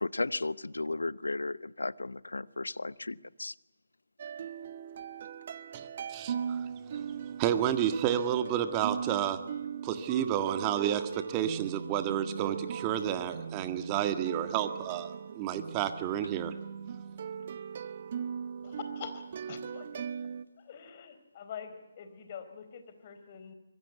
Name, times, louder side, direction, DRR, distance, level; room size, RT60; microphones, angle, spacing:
voice 1, 0.0-2.9 3.4-3.5, left 2 dB, 75° left, 0.8 m, -34 dB
sound 1, 4.2-20.4, right 7 dB, 40° right, 1.1 m, -39 dB
voice 2, 5.7-7.0 7.4-9.4 9.8-16.5, right 10 dB, 20° right, 1.7 m, -31 dB
voice 3, 18.6-20.0 20.7-23.5, left 7 dB, 35° left, 4.2 m, -45 dB
25.5 x 23.0 x 8.3 m
figure-of-eight pair, 145°, 0 cm